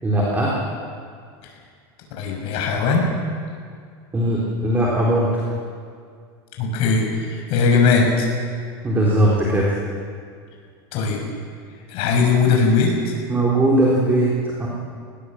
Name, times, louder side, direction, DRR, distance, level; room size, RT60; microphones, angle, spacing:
voice 1, 0.0-0.5 4.1-5.3 8.8-9.7 13.3-14.3 14.6-14.7, right 1 dB, 15° right, -4 dB, 3.8 m, -19 dB
voice 2, 2.2-3.0 6.6-8.3 10.9-11.2 11.9-12.9, left 4 dB, 50° left, 1 dB, 6.3 m, -19 dB
19.5 x 19.0 x 7.8 m, 2.2 s
supercardioid pair, 145°, 13 cm